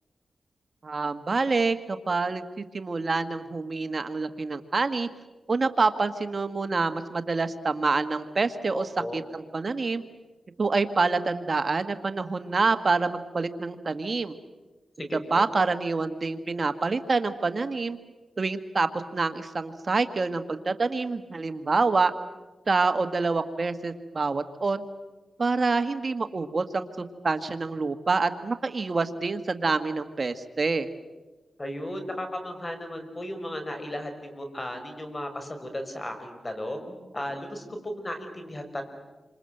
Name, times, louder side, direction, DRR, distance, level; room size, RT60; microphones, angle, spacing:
voice 1, 0.8-5.1 5.5-10.0 10.6-14.4 15.3-18.0 18.4-22.1 22.7-24.8 25.4-30.9, right 3 dB, 50° right, 10 dB, 1.5 m, -27 dB
voice 2, 8.7-9.2 15.0-15.4 31.6-38.8, left 1 dB, 30° left, 6 dB, 5.7 m, -35 dB
28.0 x 26.5 x 7.9 m, 1.2 s
cardioid pair, 70°, 0 cm